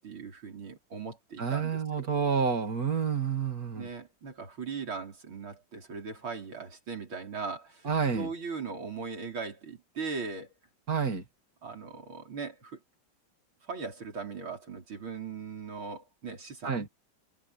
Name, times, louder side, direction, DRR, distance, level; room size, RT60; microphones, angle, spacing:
voice 1, 0.0-2.1 3.8-10.5 11.6-12.8 13.6-16.9, right 5 dB, 65° right, 6.1 m, -39 dB
voice 2, 1.4-3.9 7.8-8.3 10.9-11.2 16.6-16.9, right 6 dB, 40° right, 3.1 m, -29 dB
omnidirectional pair, 2.4 m